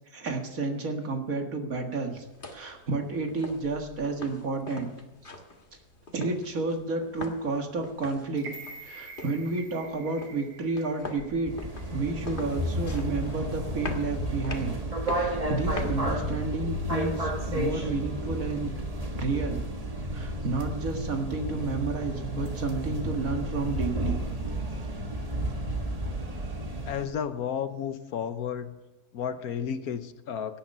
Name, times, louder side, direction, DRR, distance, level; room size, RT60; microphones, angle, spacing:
voice 1, 0.1-2.3 2.5-4.9 6.1-8.5 8.8-11.5 11.9-14.7 15.0-18.8 19.2-19.6 20.1-24.2, right 3 dB, 60° right, 4 dB, 2.1 m, -31 dB
sound 1, 2.1-16.3, left 2 dB, 35° left, 1.6 m, -44 dB
sound 2, 8.4-12.5 12.9-13.0, right 4 dB, 80° right, 1.9 m, -47 dB
sound 3, 11.5-27.1, right 1 dB, 25° right, 1.7 m, -32 dB
voice 2, 26.8-28.8 29.1-30.6, left 8 dB, 70° left, 11 dB, 1.3 m, -32 dB
17.0 x 9.8 x 5.4 m, 1.0 s
omnidirectional pair, 1.7 m